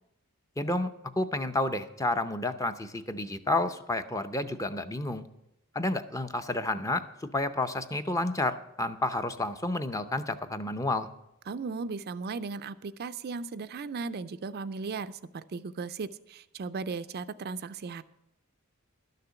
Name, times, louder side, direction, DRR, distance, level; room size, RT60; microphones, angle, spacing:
voice 1, 0.6-5.3 5.7-7.0 7.3-11.1, left 2 dB, 15° left, 9 dB, 0.6 m, -30 dB
voice 2, 11.5-18.0, right 4 dB, 45° right, 13 dB, 0.4 m, -36 dB
12.0 x 6.7 x 8.1 m, 0.87 s
head